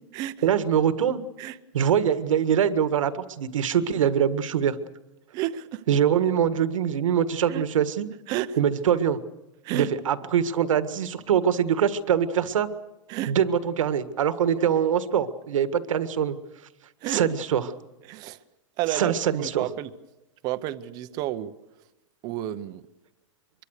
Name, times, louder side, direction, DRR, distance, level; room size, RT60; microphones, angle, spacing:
voice 1, 0.4-1.2 1.7-4.7 5.9-8.1 8.6-9.2 9.7-12.7 13.3-16.4 17.1-17.6 18.9-19.7, right 8 dB, 85° right, 11 dB, 1.7 m, -23 dB
voice 2, 5.3-5.8 7.5-7.6 8.3-8.6 9.6-9.9 13.1-13.3 17.0-17.2 18.1-18.4 18.8-19.9 20.4-21.5 22.2-22.8, right 13 dB, 25° right, 13 dB, 0.7 m, -30 dB
24.5 x 22.5 x 6.6 m, 0.97 s
supercardioid pair, 170°, 16 cm